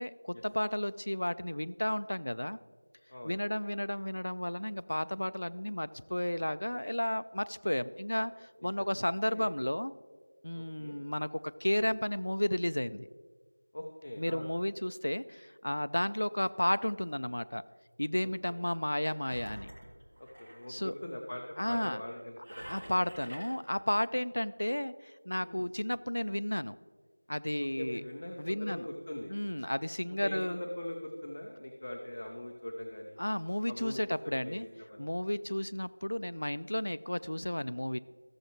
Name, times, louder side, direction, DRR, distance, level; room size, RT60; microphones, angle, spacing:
voice 1, 0.0-2.6 3.2-9.9 10.4-11.3 11.6-13.1 14.2-17.6 18.0-19.7 20.7-20.9 21.6-22.0 22.7-26.8 27.3-28.0 28.4-28.8 29.3-30.6 33.2-34.7 35.0-38.0, left 1 dB, 65° left, 13 dB, 0.3 m, -33 dB
voice 2, 8.6-9.0 9.3-9.5 10.5-11.0 13.7-14.5 18.2-18.6 20.2-22.7 25.4-25.7 27.6-29.3 30.2-33.2 33.7-35.1, left 1 dB, 30° left, 1 dB, 0.7 m, -42 dB
Engine, 19.2-20.7 22.4-23.7, equal, 40° right, 1.7 m, -47 dB
14.0 x 6.9 x 3.0 m, 1.5 s
figure-of-eight pair, 175°, 0 cm